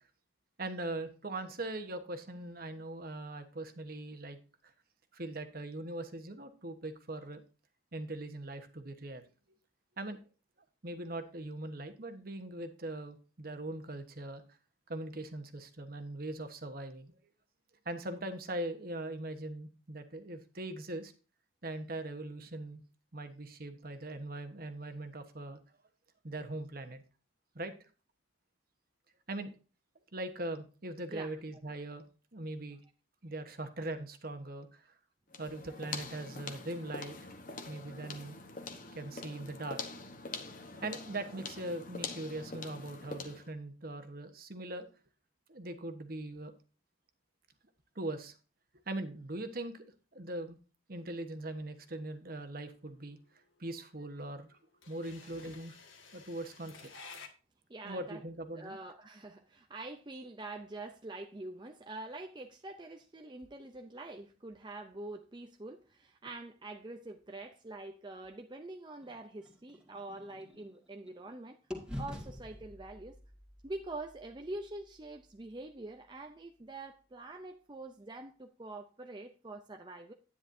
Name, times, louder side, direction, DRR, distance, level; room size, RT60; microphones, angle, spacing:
voice 1, 0.6-4.4 5.1-7.4 7.9-9.2 10.0-10.2 10.8-14.4 14.9-17.1 17.8-21.1 21.6-22.8 23.1-25.6 26.2-27.0 27.5-27.7 29.3-29.5 30.1-32.0 32.3-32.8 33.2-34.9 35.4-37.2 37.7-38.4 38.9-39.8 40.8-44.9 45.5-46.5 47.9-48.3 48.9-49.8 50.1-50.6 50.9-53.2 53.6-54.5 54.9-55.8 56.1-56.9 57.8-58.8, right 2 dB, 50° right, 1.2 m, -41 dB
sound 1, 35.3-43.5, left 4 dB, 45° left, 1.1 m, -44 dB
sound 2, 51.0-57.3, left 5 dB, 80° left, 1.8 m, -53 dB
voice 2, 57.7-58.2 58.5-71.6 72.0-73.2 73.6-80.1, right 2 dB, 25° right, 0.5 m, -45 dB
sound 3, 69.0-71.3 71.7-75.7, left 1 dB, 5° right, 2.0 m, -47 dB
10.0 x 9.9 x 2.7 m
head